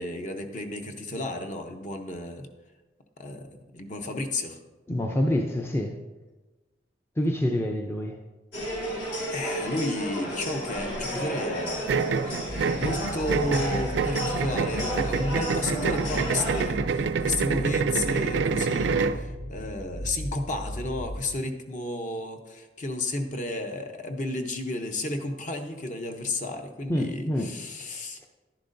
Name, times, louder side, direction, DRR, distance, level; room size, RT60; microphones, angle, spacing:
voice 1, 0.0-2.5 3.2-4.6 9.3-11.9 12.7-28.3, left 2 dB, 45° left, 5 dB, 0.8 m, -32 dB
voice 2, 4.9-6.0 7.2-8.2 26.9-27.5, left 1 dB, 15° left, 3 dB, 0.4 m, -27 dB
rugby club in spain, 8.5-16.6, equal, 65° left, 2.6 m, -32 dB
sound 1, 11.9-19.2, right 5 dB, 70° right, 0.4 m, -27 dB
sound 2, 12.5-21.3, equal, 85° left, 0.8 m, -37 dB
10.5 x 10.5 x 2.6 m, 1.2 s
head